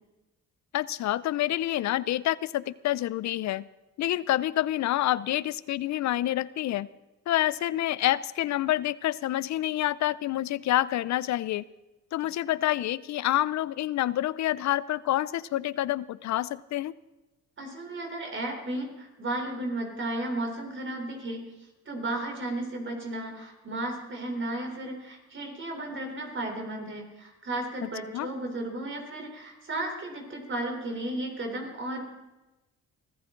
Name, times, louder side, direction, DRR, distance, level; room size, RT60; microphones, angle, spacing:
voice 1, 0.7-3.7 4.0-6.9 7.3-11.6 12.1-16.9 28.1-28.3, left 14 dB, 65° left, 19 dB, 0.6 m, -27 dB
voice 2, 17.6-21.5 21.9-32.0, right 1 dB, 40° right, 2 dB, 3.8 m, -34 dB
23.5 x 14.5 x 3.9 m, 1.0 s
cardioid pair, 90°, 30 cm